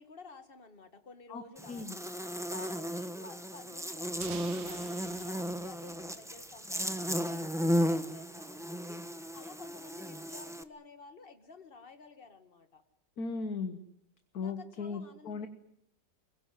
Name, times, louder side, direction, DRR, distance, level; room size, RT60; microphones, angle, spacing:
voice 1, 0.0-2.1 2.5-9.0 9.3-12.8 14.4-15.5, left 3 dB, 30° left, 8 dB, 2.1 m, -52 dB
voice 2, 1.3-2.0 13.2-13.8 14.3-15.5, left 4 dB, 55° left, 8 dB, 1.8 m, -37 dB
Buzz, 1.6-10.6, equal, ahead, 0.8 m, -35 dB
sound 1, 4.2-7.0, right 9 dB, 75° right, 1.8 m, -49 dB
23.0 x 21.5 x 9.4 m, 0.73 s
omnidirectional pair, 2.0 m